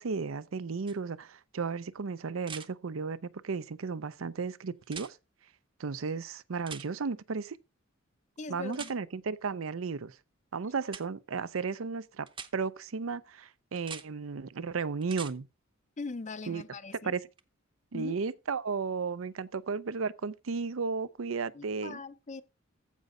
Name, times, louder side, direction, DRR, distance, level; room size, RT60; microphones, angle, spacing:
voice 1, 0.0-5.2 5.8-7.6 8.5-10.2 10.5-12.3 12.5-15.5 16.5-16.6 17.0-17.2 17.9-22.0, right 5 dB, 85° right, 0.6 m, -34 dB
sound 1, 0.9-1.0 2.4-2.7 4.8-5.1 6.7-6.9 8.7-8.9 10.9-11.0 12.3-12.5 13.8-14.1 15.0-15.3 17.4-17.5, right 6 dB, 25° right, 0.7 m, -42 dB
voice 2, 8.4-8.9 16.0-17.1 17.9-18.2 21.5-22.4, left 3 dB, 35° left, 0.6 m, -41 dB
15.0 x 5.3 x 3.7 m
head